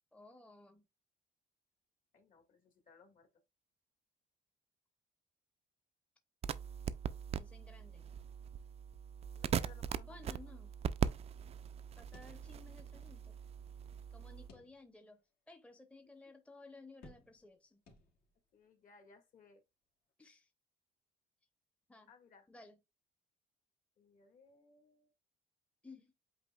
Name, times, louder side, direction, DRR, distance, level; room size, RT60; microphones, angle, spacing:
voice 1, 0.1-0.9 7.3-8.0 9.9-10.7 12.0-13.4 14.1-15.2 15.5-17.8 20.2-20.5 21.9-22.1 22.5-22.7 25.8-26.1, left 3 dB, 5° left, 0.7 m, -57 dB
voice 2, 2.1-3.4 9.4-10.5 16.0-16.3 18.5-19.6 22.1-22.5 24.0-25.1, left 4 dB, 55° left, 1.7 m, -62 dB
sound 1, 6.4-14.5, right 8 dB, 40° right, 0.4 m, -41 dB
sound 2, 12.1-13.0 13.3-13.4 14.5-15.1 15.7-15.8 17.0-17.6 17.9-18.5, left 2 dB, 75° left, 1.8 m, -61 dB
8.1 x 2.7 x 2.3 m
cardioid pair, 110°, 17 cm